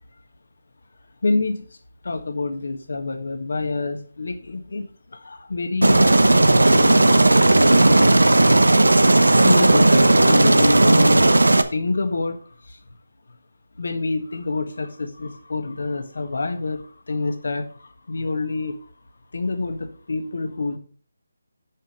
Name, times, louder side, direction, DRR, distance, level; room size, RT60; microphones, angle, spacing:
voice 1, 1.2-1.7 2.0-6.3 6.7-8.1 9.4-11.3 11.7-12.8 13.8-18.8 19.3-20.8, left 3 dB, 65° left, 7 dB, 1.6 m, -27 dB
Aircraft, 5.8-11.6, right 2 dB, 85° right, 0.9 m, -15 dB
7.6 x 5.7 x 6.4 m, 0.43 s
figure-of-eight pair, 160°, 0 cm